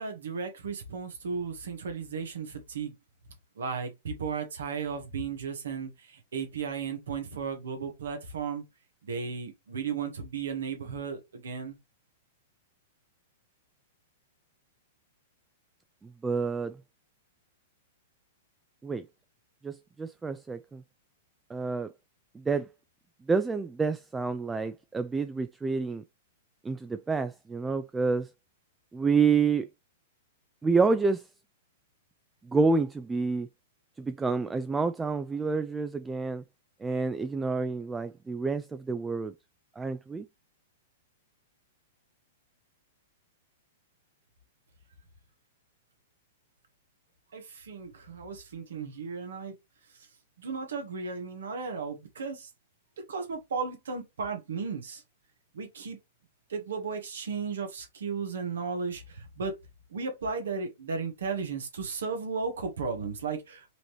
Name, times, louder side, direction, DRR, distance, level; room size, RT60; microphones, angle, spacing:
voice 1, 0.0-2.9 3.6-8.6 9.0-11.7 47.3-49.5 50.4-52.5 53.1-55.0 55.5-56.0 56.5-59.5 59.9-63.6, right 5 dB, 85° right, 1.7 m, -35 dB
voice 2, 16.2-16.8 18.8-19.1 19.6-20.8 21.5-21.9 22.3-22.7 23.3-26.0 26.6-28.3 28.9-29.7 30.6-31.3 32.4-33.5 34.0-36.4 36.8-39.3 39.8-40.3, right 4 dB, 10° right, 0.3 m, -28 dB
5.0 x 3.0 x 3.3 m
hypercardioid pair, 130°, 0 cm